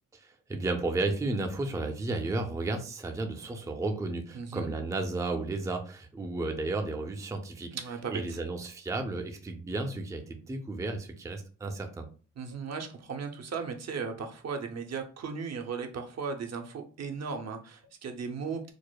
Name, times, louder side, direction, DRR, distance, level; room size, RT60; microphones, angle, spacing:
voice 1, 0.1-7.7 8.1-12.1, right 2 dB, 10° right, 4 dB, 0.4 m, -33 dB
voice 2, 4.3-4.7 7.7-8.4 12.4-18.7, right 5 dB, 55° right, 4 dB, 0.7 m, -36 dB
4.8 x 2.0 x 2.2 m, 0.38 s
cardioid pair, 90°, 32 cm